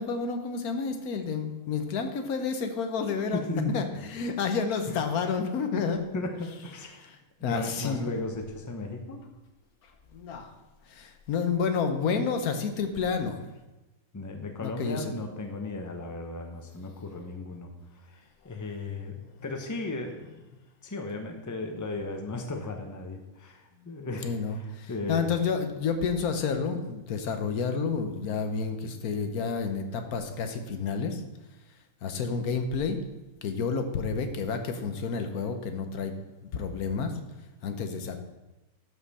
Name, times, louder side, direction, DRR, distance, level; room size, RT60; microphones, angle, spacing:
voice 1, 0.0-3.4 3.7-6.0 7.0-7.1 7.4-8.2 10.1-10.5 10.9-13.4 14.6-15.1 24.2-31.2 32.0-33.0 33.4-36.1 36.4-37.1 37.6-38.2, left 5 dB, 90° left, 7 dB, 1.4 m, -30 dB
voice 2, 3.3-3.8 4.9-5.0 5.8-5.9 6.1-7.1 7.4-9.2 14.1-17.7 18.0-25.3, left 2 dB, 15° left, 4 dB, 0.8 m, -36 dB
12.5 x 5.6 x 4.2 m, 1.1 s
omnidirectional pair, 1.5 m